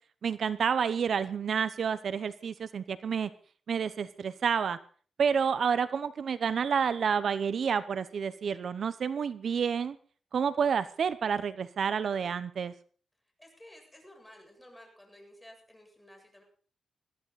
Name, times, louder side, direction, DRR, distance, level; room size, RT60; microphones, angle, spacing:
voice 1, 0.2-3.3 3.7-4.8 5.2-10.0 10.3-12.7, right 6 dB, 70° right, 14 dB, 0.8 m, -29 dB
voice 2, 13.4-16.4, left 1 dB, 10° left, 2 dB, 7.9 m, -54 dB
21.5 x 14.5 x 4.1 m, 0.43 s
cardioid pair, 85°, 0 cm